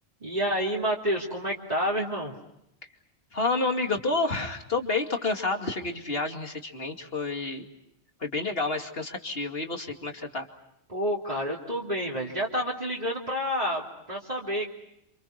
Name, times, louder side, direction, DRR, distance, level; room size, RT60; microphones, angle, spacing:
voice 1, 0.2-2.3 10.9-13.8 14.1-14.7, equal, 40° right, -4 dB, 3.2 m, -29 dB
voice 2, 3.3-7.7 8.2-10.5, left 3 dB, 60° left, 4 dB, 2.8 m, -29 dB
28.5 x 28.0 x 5.9 m, 0.83 s
omnidirectional pair, 1.1 m